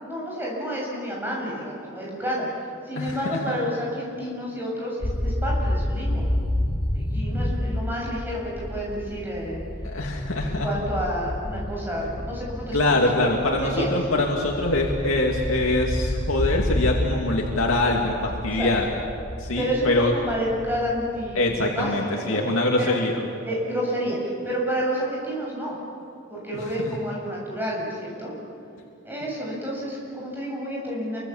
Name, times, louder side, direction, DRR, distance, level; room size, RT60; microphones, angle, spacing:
voice 1, 0.0-2.5 2.8-6.3 6.9-9.6 10.4-12.8 13.1-13.3 13.6-13.9 18.5-18.7 19.6-22.4 22.8-22.9 23.4-25.8 26.3-28.3 29.0-31.2, equal, 10° right, -4 dB, 7.5 m, -30 dB
voice 2, 2.9-3.6 9.8-10.7 12.7-18.9 19.4-20.1 21.3-23.3 26.8-26.9, left 2 dB, 85° left, 0 dB, 2.5 m, -24 dB
sound 1, 5.0-21.8, left 1 dB, 25° left, 1.2 m, -30 dB
28.5 x 24.5 x 7.3 m, 2.7 s
head